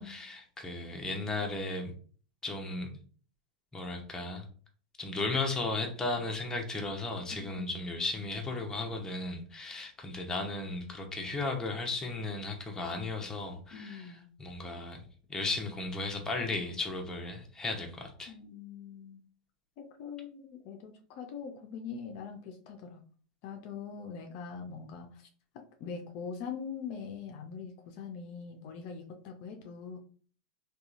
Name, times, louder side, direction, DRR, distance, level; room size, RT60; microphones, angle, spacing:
voice 1, 0.0-1.9 2.4-2.9 3.7-4.5 5.0-15.0 15.3-18.3, left 2 dB, 10° left, 1 dB, 0.7 m, -35 dB
voice 2, 7.3-7.8 13.7-14.3 18.3-19.2 19.8-23.0 23.4-25.3 25.8-30.0, left 6 dB, 50° left, 4 dB, 0.5 m, -43 dB
2.8 x 2.3 x 2.4 m, 0.43 s
hypercardioid pair, 110°, 5 cm